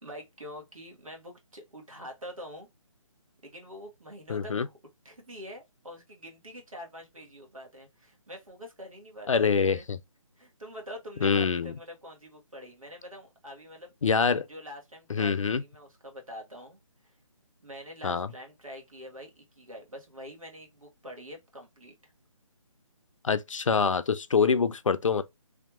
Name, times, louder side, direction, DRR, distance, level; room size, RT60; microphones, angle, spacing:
voice 1, 0.0-2.7 3.4-4.7 5.0-9.8 10.4-13.9 14.5-17.1 17.6-22.1, equal, 80° right, 1.8 m, -45 dB
voice 2, 4.3-4.7 9.3-10.0 11.2-11.7 14.0-14.5 15.1-15.6 18.0-18.3 23.2-25.2, left 5 dB, 65° left, 0.5 m, -25 dB
3.3 x 2.8 x 2.4 m
figure-of-eight pair, 150°, 17 cm